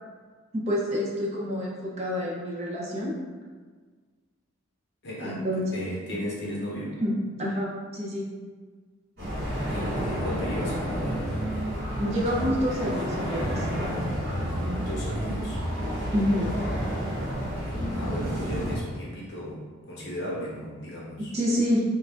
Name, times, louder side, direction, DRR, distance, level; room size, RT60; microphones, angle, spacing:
voice 1, 0.5-3.1 5.2-5.7 7.0-8.3 12.0-13.7 16.1-16.5 21.3-21.9, equal, 30° right, -4 dB, 0.5 m, -27 dB
voice 2, 5.0-5.5 5.7-7.0 9.7-11.2 14.8-15.7 17.9-21.3, equal, 50° left, -5 dB, 0.8 m, -35 dB
sound 1, 9.2-18.7, equal, 50° right, 1.2 m, -30 dB
3.1 x 2.4 x 3.5 m, 1.5 s
head